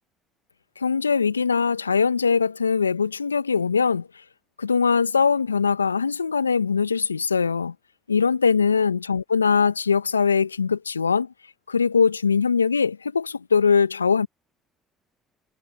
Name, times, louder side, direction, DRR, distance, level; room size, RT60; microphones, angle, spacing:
voice 1, 0.8-4.1 4.6-7.7 8.1-11.3 11.7-14.3, left 5 dB, 85° left, 1.9 m, -21 dB
figure-of-eight pair, 55°, 0 cm